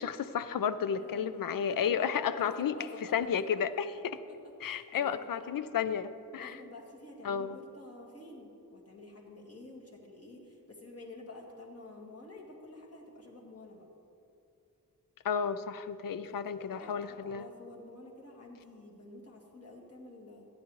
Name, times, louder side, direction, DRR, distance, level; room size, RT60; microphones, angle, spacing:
voice 1, 0.0-2.8 3.1-4.2 4.6-6.6 7.2-7.6 15.2-17.4, left 7 dB, 70° left, 13 dB, 0.5 m, -32 dB
voice 2, 0.9-1.4 1.7-3.7 4.6-5.5 6.3-13.9 16.1-20.5, left 2 dB, 45° left, -2 dB, 2.0 m, -49 dB
15.5 x 10.0 x 3.1 m, 2.7 s
wide cardioid pair, 110°, 34 cm